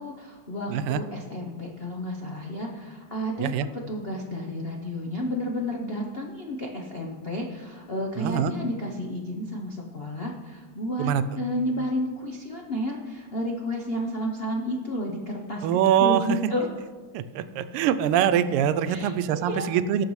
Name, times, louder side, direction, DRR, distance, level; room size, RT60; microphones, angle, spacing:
voice 1, 0.0-3.5 3.9-11.1 11.4-15.7 16.0-16.7 18.8-19.7, left 1 dB, 65° left, 0 dB, 0.6 m, -31 dB
voice 2, 0.7-1.0 3.4-3.7 8.2-8.5 11.0-11.2 15.6-16.3 17.1-20.0, right 9 dB, 90° right, 12 dB, 1.5 m, -23 dB
17.5 x 6.9 x 3.1 m, 1.4 s
omnidirectional pair, 2.4 m